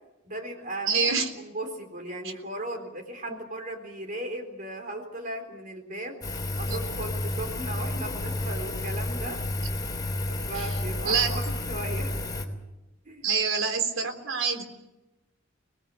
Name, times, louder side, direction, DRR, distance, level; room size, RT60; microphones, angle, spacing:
voice 1, 0.3-6.2 6.6-9.4 10.3-12.2 13.0-13.3, right 1 dB, 40° right, 5 dB, 3.9 m, -37 dB
voice 2, 0.9-1.3 6.7-6.8 10.6-10.7 11.1-11.3 13.2-14.6, right 5 dB, 80° right, 6 dB, 3.7 m, -26 dB
Engine, 6.2-12.4, left 2 dB, 20° left, 3.3 m, -31 dB
26.5 x 19.5 x 8.3 m, 0.98 s
head